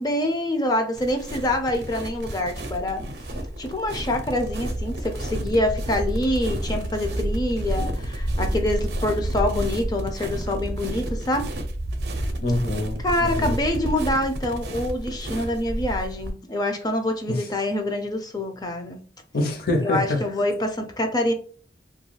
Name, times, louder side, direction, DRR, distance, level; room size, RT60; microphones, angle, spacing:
voice 1, 0.0-3.0 3.6-11.5 13.0-19.0 19.8-21.3, left 1 dB, 25° left, 0.4 m, -26 dB
sound 1, 0.9-16.3, right 1 dB, 65° right, 0.5 m, -30 dB
voice 2, 12.4-13.6 17.3-17.4 19.3-20.2, left 1 dB, 60° left, 0.7 m, -25 dB
2.3 x 2.2 x 3.1 m
head